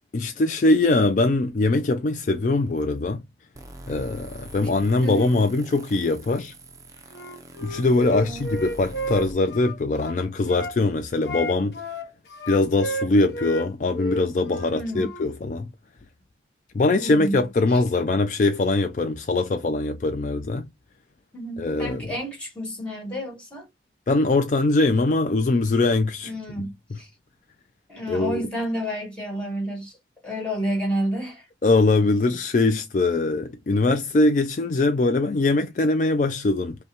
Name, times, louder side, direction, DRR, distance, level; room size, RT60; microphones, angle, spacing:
voice 1, 0.1-3.2 3.9-6.5 7.6-11.8 12.5-15.7 16.7-20.7 21.6-22.1 24.1-26.3 28.1-28.4 31.6-36.8, left 2 dB, 45° left, 0.3 m, -22 dB
sound 1, 3.6-9.3, right 1 dB, 20° right, 0.5 m, -43 dB
voice 2, 5.0-5.4 8.1-8.4 14.7-15.1 17.0-17.4 21.3-23.6 26.2-27.1 27.9-29.9 30.2-31.4, equal, 5° left, 1.9 m, -30 dB
Wind instrument woodwind instrument, 7.1-10.8 11.2-13.7 13.9-15.3, equal, 65° left, 0.8 m, -32 dB
5.4 x 2.2 x 2.9 m
head